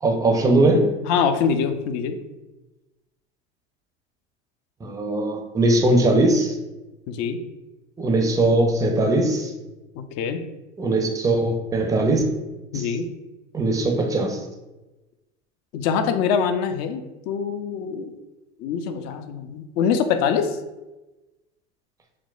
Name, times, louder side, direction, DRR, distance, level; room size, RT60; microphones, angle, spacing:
voice 1, 0.0-0.9 4.8-6.5 8.0-9.5 10.8-12.2 12.7-12.9 13.5-14.4, right 2 dB, 10° right, 4 dB, 0.5 m, -20 dB
voice 2, 1.1-2.2 7.1-7.4 9.9-10.4 12.7-13.1 15.7-18.1 18.6-20.6, left 6 dB, 50° left, 8 dB, 0.5 m, -24 dB
5.9 x 2.1 x 2.4 m, 1.0 s
hypercardioid pair, 90°, 36 cm